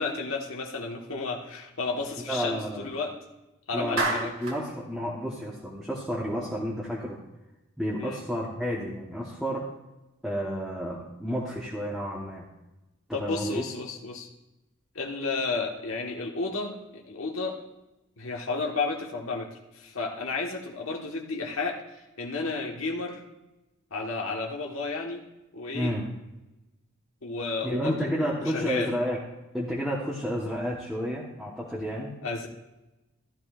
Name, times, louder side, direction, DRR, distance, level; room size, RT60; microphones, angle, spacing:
voice 1, 0.0-3.1 3.7-4.4 8.0-8.2 13.1-14.3 14.9-17.6 18.2-23.2 23.9-25.2 25.5-25.9 27.2-28.9 32.2-32.5, left 3 dB, 85° left, 0 dB, 1.4 m, -32 dB
voice 2, 2.3-2.9 3.7-7.2 7.8-9.7 10.2-12.5 13.1-13.6 25.7-26.0 27.6-29.2 29.5-32.1, equal, ahead, -6 dB, 1.2 m, -31 dB
Clapping, 4.0-4.6, right 2 dB, 85° right, 2.0 m, -28 dB
15.0 x 12.0 x 2.5 m, 0.98 s
head